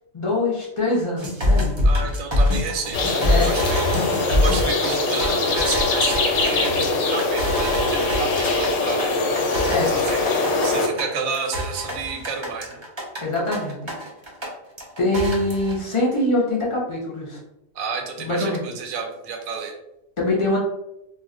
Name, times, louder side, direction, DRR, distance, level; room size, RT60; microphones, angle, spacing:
voice 1, 0.1-1.7 3.2-3.5 9.7-9.9 13.2-13.9 15.0-17.4 18.2-18.6 20.2-20.6, left 2 dB, 40° left, -5 dB, 0.4 m, -23 dB
sound 1, 1.2-14.5 14.8-15.8, left 1 dB, 35° right, 0.4 m, -25 dB
voice 2, 1.8-9.1 9.9-12.8 17.7-19.7, right 5 dB, 90° right, 2 dB, 1.0 m, -31 dB
sound 2, 2.9-10.9, left 3 dB, 70° left, 0.9 m, -22 dB
2.4 x 2.1 x 3.6 m, 0.86 s
omnidirectional pair, 1.4 m